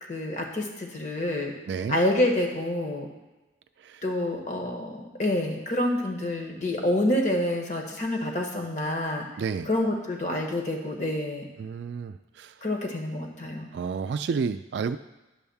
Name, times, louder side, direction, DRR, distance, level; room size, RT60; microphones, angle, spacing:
voice 1, 0.0-1.5 1.9-3.1 4.0-9.3 9.6-11.5 12.6-13.7, left 1 dB, 45° left, 1 dB, 1.3 m, -27 dB
voice 2, 1.7-2.0 3.8-4.0 9.4-9.7 11.6-12.5 13.7-15.0, right 5 dB, 80° right, 10 dB, 0.3 m, -30 dB
10.0 x 3.5 x 7.0 m, 1.1 s
head